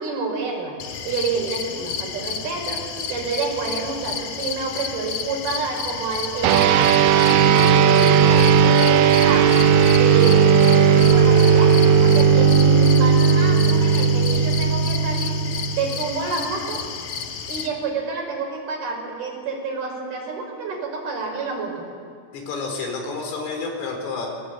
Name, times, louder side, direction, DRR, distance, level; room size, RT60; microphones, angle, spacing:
voice 1, 0.0-9.6 9.9-16.8 17.5-21.9, right 4 dB, 50° right, 1 dB, 6.9 m, -29 dB
sound 1, 0.8-17.7, left 6 dB, 55° left, 2.6 m, -31 dB
sound 2, 6.4-16.2, right 6 dB, 75° right, 2.9 m, -16 dB
voice 2, 22.3-24.3, left 4 dB, 80° left, 2 dB, 7.2 m, -29 dB
28.0 x 21.5 x 8.6 m, 2.1 s
omnidirectional pair, 5.8 m